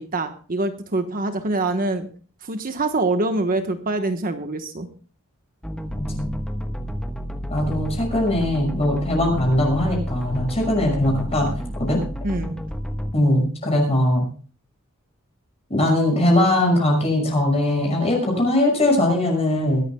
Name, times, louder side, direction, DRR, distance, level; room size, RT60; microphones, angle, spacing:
voice 1, 0.0-2.1 2.4-4.9 12.2-12.5, right 2 dB, 40° right, 7 dB, 1.2 m, -25 dB
sound 1, 5.6-13.1, equal, 5° left, 1.2 m, -30 dB
voice 2, 6.0-6.3 7.5-11.5 11.8-12.0 13.1-14.3 15.7-19.8, left 1 dB, 30° left, 1 dB, 5.9 m, -20 dB
22.5 x 13.0 x 2.3 m, 0.41 s
head